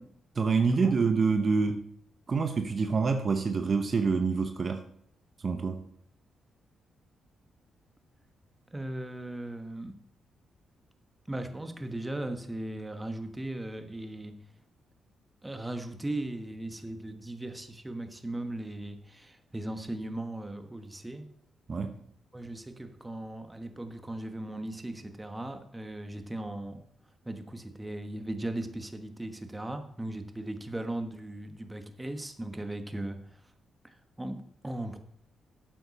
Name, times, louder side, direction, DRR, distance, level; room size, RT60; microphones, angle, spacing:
voice 1, 0.4-1.8 2.3-4.8 5.4-5.8 21.7-22.0, right 4 dB, 45° right, 0.9 m, -26 dB
voice 2, 8.7-10.0 11.3-14.4 15.4-21.3 22.3-26.8 27.2-33.4 33.8-35.0, right 1 dB, 15° right, 1.3 m, -38 dB
12.0 x 8.4 x 4.2 m
cardioid pair, 80°, 0 cm